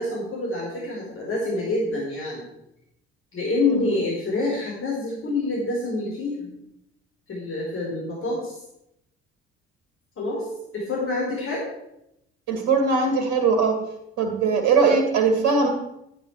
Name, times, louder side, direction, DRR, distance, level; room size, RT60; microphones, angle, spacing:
voice 1, 0.0-2.4 3.3-6.5 7.3-8.6 10.2-10.5 10.7-11.7, left 2 dB, 40° left, -4 dB, 4.6 m, -27 dB
voice 2, 12.5-13.8 14.2-15.7, right 4 dB, 65° right, 6 dB, 2.0 m, -20 dB
12.0 x 9.9 x 4.8 m, 0.83 s
figure-of-eight pair, 50°, 31 cm